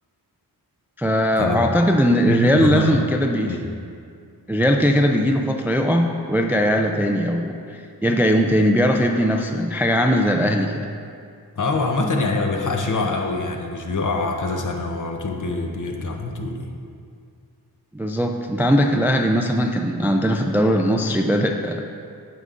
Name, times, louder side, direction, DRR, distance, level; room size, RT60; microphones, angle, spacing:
voice 1, 1.0-3.6 4.5-10.9 17.9-21.8, equal, 5° right, 3 dB, 0.3 m, -20 dB
voice 2, 2.2-2.9 3.5-3.6 11.6-16.7, left 3 dB, 50° left, 2 dB, 0.8 m, -24 dB
9.0 x 6.8 x 2.5 m, 2.3 s
wide cardioid pair, 85°, 39 cm